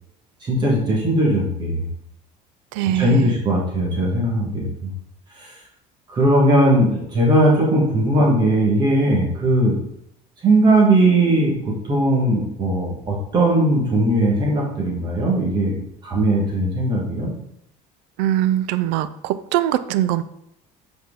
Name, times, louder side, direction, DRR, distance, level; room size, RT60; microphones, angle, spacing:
voice 1, 0.4-1.9 3.0-4.9 5.4-5.5 6.1-9.7 10.4-15.8 16.0-17.3, right 1 dB, 25° right, -3 dB, 1.4 m, -18 dB
voice 2, 2.7-3.4 18.2-20.2, right 13 dB, 75° right, 13 dB, 0.4 m, -22 dB
7.5 x 4.4 x 3.6 m, 0.77 s
cardioid pair, 180°, 17 cm